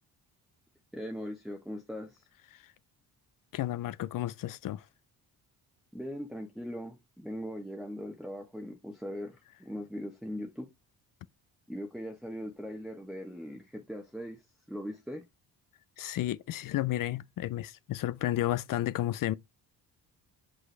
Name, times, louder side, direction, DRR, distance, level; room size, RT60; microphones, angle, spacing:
voice 1, 0.9-2.2 5.9-10.7 11.7-14.4 14.7-15.2, equal, ahead, 1.0 m, -40 dB
voice 2, 3.5-4.9 16.0-19.3, left 14 dB, 50° left, 0.5 m, -32 dB
6.0 x 5.0 x 3.3 m
cardioid pair, 80°, 42 cm